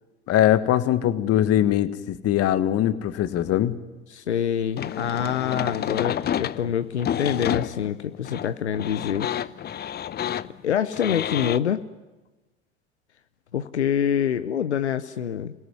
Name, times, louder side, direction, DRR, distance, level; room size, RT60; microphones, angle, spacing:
voice 1, 0.3-3.7, left 12 dB, 45° left, 12 dB, 1.6 m, -21 dB
voice 2, 4.1-9.3 10.6-11.8 13.5-15.5, left 8 dB, 90° left, 11 dB, 0.8 m, -26 dB
sound 1, 4.8-11.6, left 10 dB, 30° left, 0.7 m, -29 dB
27.0 x 17.5 x 9.6 m, 1.2 s
hypercardioid pair, 75°, 33 cm